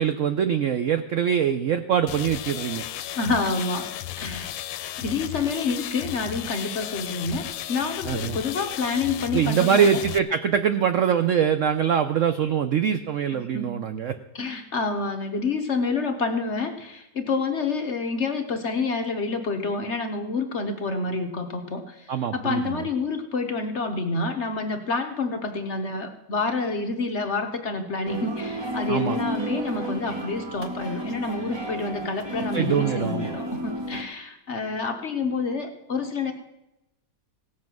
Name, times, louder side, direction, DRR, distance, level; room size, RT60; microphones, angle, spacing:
voice 1, 0.0-2.8 8.0-8.4 9.3-14.2 22.1-22.9 28.9-29.2 32.5-33.3, right 8 dB, 90° right, 9 dB, 0.6 m, -23 dB
sound 1, 2.1-10.2, left 12 dB, 80° left, 1.3 m, -34 dB
voice 2, 3.1-3.9 4.2-4.6 5.0-10.0 13.3-13.9 14.3-36.3, left 3 dB, 50° left, 5 dB, 0.8 m, -28 dB
sound 2, 28.1-34.0, equal, 25° right, 0.6 m, -32 dB
17.0 x 7.3 x 6.0 m, 0.91 s
omnidirectional pair, 2.0 m